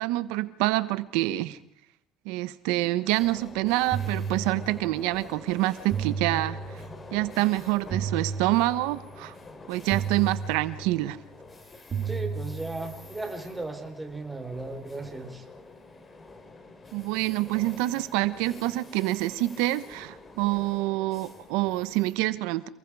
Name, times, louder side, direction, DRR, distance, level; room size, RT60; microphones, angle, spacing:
voice 1, 0.0-1.6 2.2-6.6 7.1-9.3 9.7-11.2 16.9-22.7, right 18 dB, 85° right, 15 dB, 1.2 m, -27 dB
sound 1, 3.1-22.1, left 3 dB, 25° left, 4.0 m, -47 dB
sound 2, 3.9-5.1 5.9-7.1 7.9-9.1 9.9-11.1 11.9-13.1, right 6 dB, 35° right, 4.3 m, -33 dB
voice 2, 12.1-15.4, right 2 dB, 10° right, 5 dB, 4.1 m, -36 dB
29.0 x 20.5 x 4.9 m, 0.69 s
cardioid pair, 115°, 0 cm